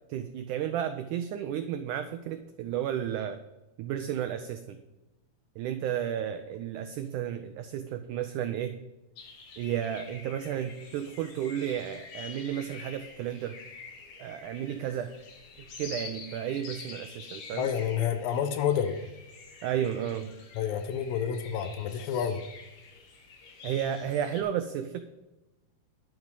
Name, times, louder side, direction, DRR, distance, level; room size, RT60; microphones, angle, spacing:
voice 1, 0.1-3.4 3.8-4.8 5.6-8.8 9.6-13.6 14.2-15.1 15.8-17.7 19.6-20.3 23.6-25.0, right 10 dB, 90° right, 9 dB, 1.7 m, -32 dB
sound 1, 9.2-24.4, left 4 dB, 60° left, 3.0 m, -47 dB
voice 2, 17.5-19.0 20.6-22.4, left 8 dB, 75° left, 8 dB, 2.5 m, -29 dB
11.0 x 8.0 x 5.4 m, 1.0 s
omnidirectional pair, 4.3 m